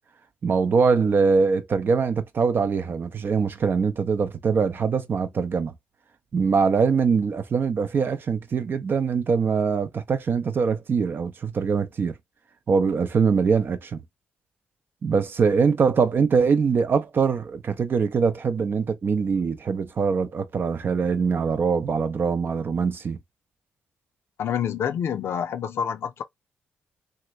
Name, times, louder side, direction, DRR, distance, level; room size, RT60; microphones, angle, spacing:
voice 1, 0.4-5.7 6.3-12.2 12.7-14.0 15.0-23.2, right 5 dB, 50° right, 0.6 m, -23 dB
voice 2, 24.4-26.2, left 8 dB, 70° left, 0.5 m, -27 dB
2.9 x 2.5 x 3.0 m
hypercardioid pair, 50°, 5 cm